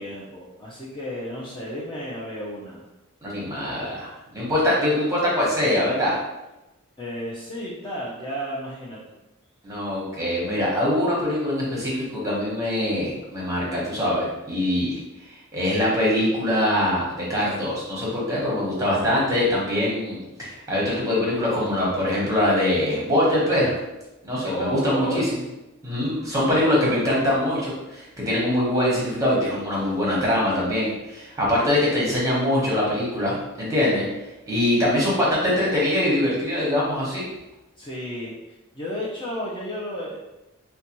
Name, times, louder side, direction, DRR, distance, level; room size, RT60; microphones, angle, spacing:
voice 1, 0.0-2.8 7.0-9.0 24.3-25.3 37.8-38.3 38.7-40.2, equal, 20° left, -6 dB, 0.5 m, -32 dB
voice 2, 3.2-6.2 9.6-15.0 15.3-23.8 24.2-25.4 25.8-34.0 34.5-37.3, left 1 dB, 15° right, -6 dB, 1.0 m, -23 dB
3.9 x 2.2 x 2.9 m, 0.98 s
head